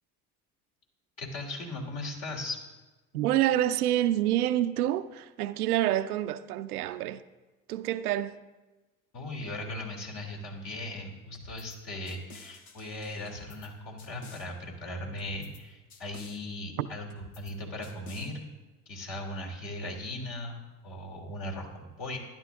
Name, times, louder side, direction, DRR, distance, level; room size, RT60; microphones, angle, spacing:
voice 1, 1.2-2.6 9.1-18.5 18.9-22.2, left 1 dB, 55° left, 3.2 m, -38 dB
voice 2, 3.1-7.2 7.7-8.4 16.8-16.9, right 13 dB, 85° right, 0.5 m, -27 dB
sound 1, 11.3-11.8 12.1-13.7 14.0-14.5 15.2-15.6 15.9-16.4 17.1-17.5 17.8-18.3, left 3 dB, 80° left, 1.2 m, -50 dB
12.0 x 11.0 x 3.6 m
hypercardioid pair, 60°, 43 cm